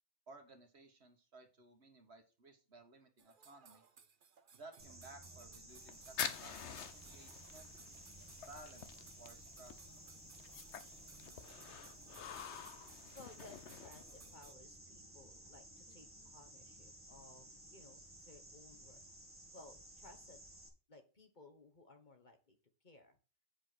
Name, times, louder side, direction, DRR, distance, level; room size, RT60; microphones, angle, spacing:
voice 1, 0.3-3.8 4.5-7.7 8.5-9.9, right 2 dB, 65° right, 6 dB, 1.8 m, -58 dB
sound 1, 3.2-14.5, right 6 dB, 50° right, 1.0 m, -63 dB
sound 2, 4.8-20.7, right 1 dB, 10° right, 2.1 m, -56 dB
sound 3, 5.7-14.4, left 7 dB, 70° left, 1.1 m, -48 dB
voice 2, 13.1-17.5 17.7-19.0 19.5-20.5 20.9-22.6 22.8-23.2, left 2 dB, 40° left, 6 dB, 1.6 m, -59 dB
7.9 x 5.0 x 6.2 m, 0.33 s
omnidirectional pair, 1.2 m